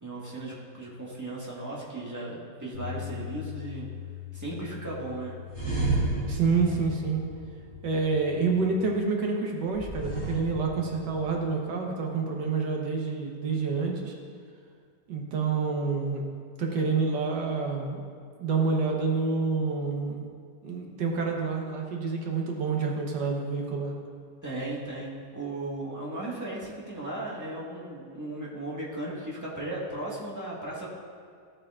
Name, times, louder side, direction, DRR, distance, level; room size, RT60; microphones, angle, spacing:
voice 1, 0.0-3.9 4.3-5.3 24.4-30.9, right 2 dB, 10° right, -7 dB, 1.6 m, -36 dB
Bass guitar, 2.7-9.0, left 12 dB, 55° left, 2.3 m, -43 dB
sound 1, 5.5-8.2 9.7-11.4, right 2 dB, 20° left, 2.1 m, -32 dB
voice 2, 6.3-7.2 7.8-14.2 15.1-16.2 16.6-18.0 18.4-20.2 20.6-23.9, right 4 dB, 80° right, 1 dB, 1.7 m, -28 dB
13.5 x 7.5 x 2.5 m, 2.1 s
omnidirectional pair, 1.8 m